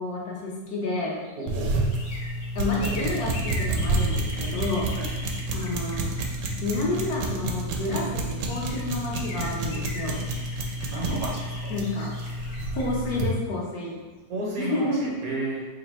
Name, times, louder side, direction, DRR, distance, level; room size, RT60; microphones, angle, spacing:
voice 1, 0.0-1.2 2.5-5.0 5.5-6.1 6.6-10.2 11.7-12.1 12.7-13.9 14.6-15.2, left 2 dB, 65° left, -4 dB, 1.3 m, -30 dB
sound 1, 0.8-7.6 8.2-8.3 8.5-14.3 14.6-14.7, left 1 dB, 85° left, 1.4 m, -41 dB
voice 2, 1.4-1.9 5.0-5.1 10.9-11.7 14.3-15.7, right 1 dB, 65° right, -3 dB, 1.1 m, -32 dB
sound 2, 1.5-13.4, right 2 dB, 90° right, 1.2 m, -29 dB
3.3 x 2.6 x 4.1 m, 1.3 s
omnidirectional pair, 1.8 m